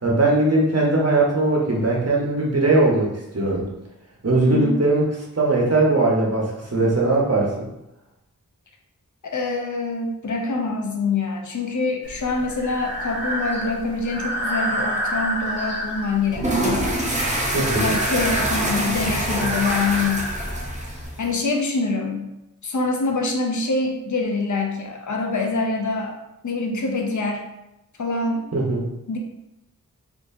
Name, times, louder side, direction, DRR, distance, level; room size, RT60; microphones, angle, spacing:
voice 1, 0.0-3.6 4.2-5.0 5.3-7.7 17.5-17.9 28.5-28.9, right 2 dB, 45° right, -3 dB, 1.1 m, -20 dB
voice 2, 4.4-4.8 9.2-16.9 17.6-20.3 21.2-22.3 22.6-26.1 26.4-27.4 28.0-28.5 29.1-29.2, left 3 dB, 55° left, 1 dB, 0.7 m, -25 dB
Breathing, 12.0-21.1, right 1 dB, 30° left, 1.1 m, -30 dB
sound 1, 16.3-21.3, right 1 dB, 20° right, 0.7 m, -25 dB
4.3 x 2.9 x 2.7 m, 0.89 s
wide cardioid pair, 45°, 34 cm